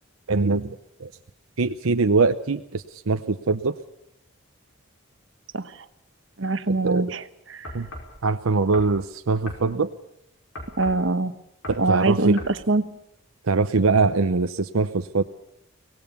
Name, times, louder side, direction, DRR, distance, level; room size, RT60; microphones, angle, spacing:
voice 1, 0.3-1.1 1.6-3.7 6.7-7.1 7.7-7.9 8.2-9.9 11.7-12.4 13.5-15.2, right 4 dB, 85° right, 8 dB, 0.8 m, -23 dB
voice 2, 6.4-7.2 7.5-7.7 10.8-11.3 11.8-12.8, right 2 dB, 65° right, 11 dB, 1.2 m, -23 dB
sound 1, 7.6-8.2 8.7-9.0 9.5-9.7 10.5-11.1 11.6-11.9 12.4-12.6, left 1 dB, 85° left, 5.1 m, -38 dB
24.0 x 18.5 x 6.9 m, 0.76 s
head